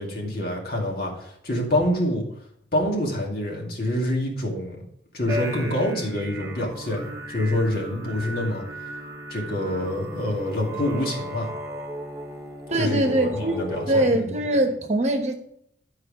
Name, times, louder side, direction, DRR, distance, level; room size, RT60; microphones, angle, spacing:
voice 1, 0.0-2.3 2.7-4.8 5.1-8.6 9.3-11.5 12.8-14.4, left 1 dB, 50° left, -1 dB, 2.3 m, -26 dB
sound 1, 5.3-14.1, equal, 15° right, 1.1 m, -35 dB
voice 2, 12.7-13.6 13.9-15.3, right 1 dB, 35° right, 4 dB, 1.1 m, -22 dB
11.5 x 4.8 x 4.9 m, 0.69 s
head